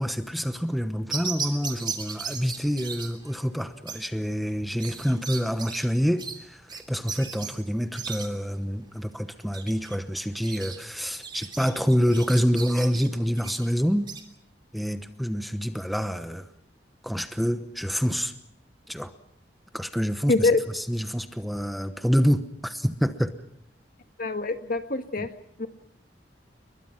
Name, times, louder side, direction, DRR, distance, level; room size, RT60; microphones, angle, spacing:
voice 1, 0.0-14.0 14.7-16.5 17.0-18.3 18.9-19.1 19.7-23.4, equal, ahead, 1.0 m, -27 dB
sound 1, 1.1-14.2, right 5 dB, 25° right, 3.1 m, -38 dB
voice 2, 20.3-20.6 24.2-25.3 25.6-25.7, left 3 dB, 55° left, 1.7 m, -24 dB
30.0 x 22.5 x 5.9 m
head